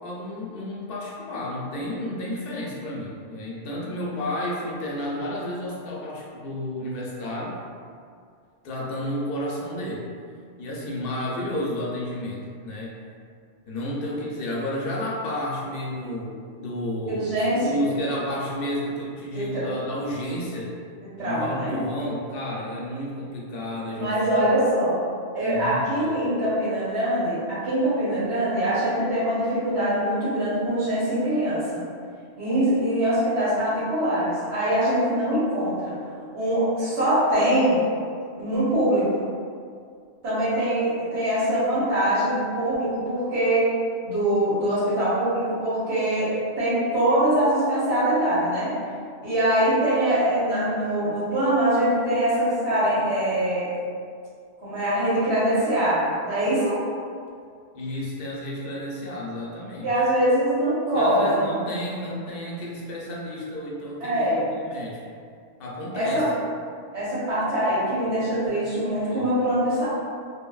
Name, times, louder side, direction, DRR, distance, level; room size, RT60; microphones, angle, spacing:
voice 1, 0.0-7.6 8.6-10.0 10.6-12.9 13.7-17.3 17.6-20.7 21.2-24.2 25.4-26.1 57.7-59.9 60.9-65.0 65.6-66.2 69.1-69.3, left 1 dB, 65° left, -4 dB, 0.7 m, -31 dB
voice 2, 17.1-17.8 19.3-19.6 21.2-21.8 23.9-25.0 25.3-31.8 32.4-36.0 36.3-37.8 38.4-39.1 40.2-43.7 44.0-48.8 49.2-53.7 54.6-56.8 59.8-61.5 64.0-64.4 65.9-66.3 66.9-69.8, right 1 dB, 80° right, -11 dB, 1.2 m, -23 dB
3.0 x 2.1 x 2.2 m, 2.2 s
omnidirectional pair, 1.1 m